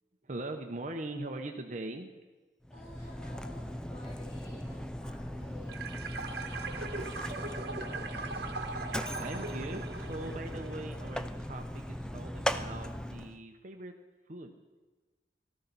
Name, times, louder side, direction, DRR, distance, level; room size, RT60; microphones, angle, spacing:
voice 1, 0.2-2.1 9.1-13.9 14.3-14.6, right 2 dB, 45° right, 5 dB, 0.8 m, -41 dB
Mechanisms, 2.6-13.4, equal, 5° left, 0.3 m, -39 dB
voice 2, 2.7-6.7, left 1 dB, 50° left, -10 dB, 5.9 m, -54 dB
sound 1, 5.7-11.4, right 3 dB, 60° right, 1.3 m, -40 dB
18.0 x 13.5 x 4.1 m, 1.3 s
head